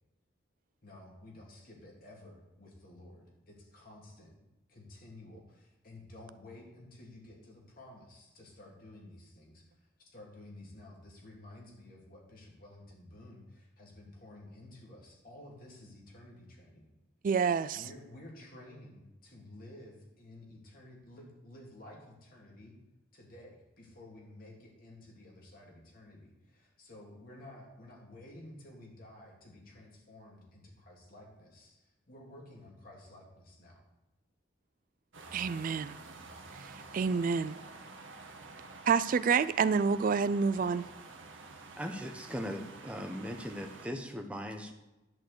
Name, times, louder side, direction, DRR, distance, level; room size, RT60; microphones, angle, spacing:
voice 1, 0.8-16.9 17.7-22.8 23.1-33.8, left 1 dB, 45° left, -2 dB, 2.4 m, -52 dB
voice 2, 17.2-17.8 35.3-36.0 36.6-37.5 38.9-40.8, right 5 dB, 45° right, 14 dB, 0.3 m, -28 dB
sound 1, 35.1-43.9, right 3 dB, 75° right, 1.3 m, -50 dB
voice 3, 41.8-44.7, equal, 5° right, 4 dB, 0.9 m, -39 dB
10.5 x 4.5 x 7.8 m, 1.0 s
head